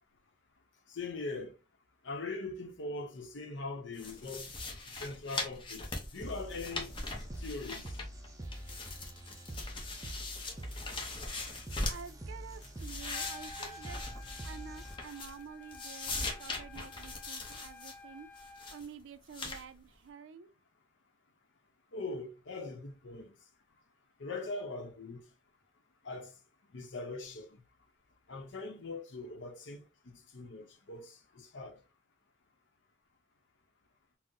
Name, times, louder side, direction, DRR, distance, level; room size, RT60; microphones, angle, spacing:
voice 1, 0.9-1.5 2.0-4.5 4.9-7.0 7.4-7.9 21.9-23.4 24.2-25.2 26.0-26.3 26.7-27.6 28.3-29.8 30.3-31.8, left 3 dB, 80° left, 0.7 m, -41 dB
sound 1, 4.0-8.3 8.5-12.1 12.5-15.4 15.7-17.9 18.4-18.8 19.3-19.6, left 2 dB, 25° left, 0.7 m, -41 dB
sound 2, 6.2-15.2, right 1 dB, 20° right, 0.5 m, -46 dB
voice 2, 11.9-14.0 14.4-18.3 18.7-20.5, right 6 dB, 75° right, 0.4 m, -49 dB
Trumpet, 13.0-18.8, left 3 dB, 5° left, 1.6 m, -52 dB
3.8 x 2.0 x 2.6 m
head